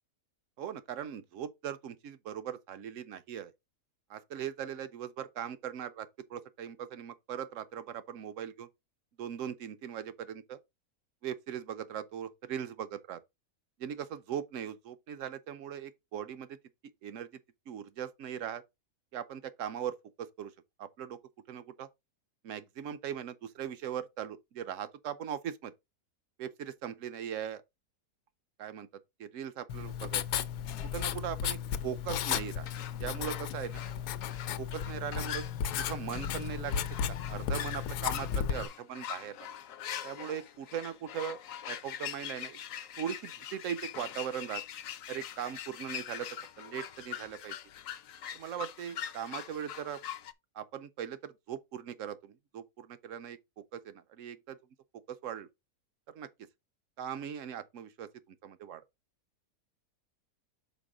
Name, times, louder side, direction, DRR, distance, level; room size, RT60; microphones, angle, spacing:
voice 1, 0.6-3.5 4.1-8.7 9.2-10.6 11.2-13.2 13.8-16.6 17.0-17.3 17.7-18.6 19.1-20.5 20.8-21.2 21.5-21.9 22.4-25.7 26.4-27.6 28.6-28.9 29.2-30.2 30.8-32.7 32.9-33.8 34.6-35.4 35.9-36.8 37.3-39.5 40.0-41.4 41.7-42.6 43.0-44.6 45.1-46.3 46.6-47.6 48.3-50.0 50.6-54.6 55.2-55.5 56.1-56.3 57.0-58.1 58.4-58.8, right 9 dB, 65° right, 0.9 m, -39 dB
Writing, 29.7-38.7, left 8 dB, 85° left, 1.1 m, -34 dB
sound 1, 32.3-50.3, left 10 dB, 65° left, 0.9 m, -43 dB
5.2 x 4.6 x 4.8 m
omnidirectional pair, 1.6 m